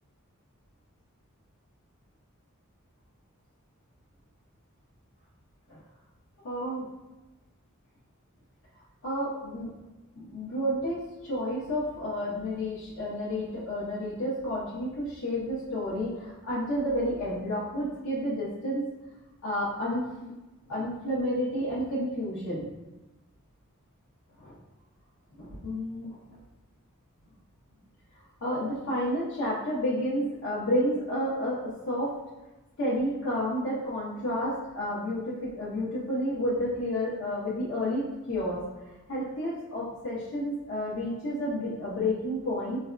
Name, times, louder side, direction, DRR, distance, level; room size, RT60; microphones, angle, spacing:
voice 1, 6.4-6.9 9.0-9.7 10.2-18.9 19.4-20.3 20.7-22.7 24.4-24.5 25.3-26.2 28.4-32.1 32.8-38.6 39.1-42.8, equal, 70° left, -8 dB, 0.6 m, -30 dB
3.3 x 2.1 x 2.4 m, 1.1 s
head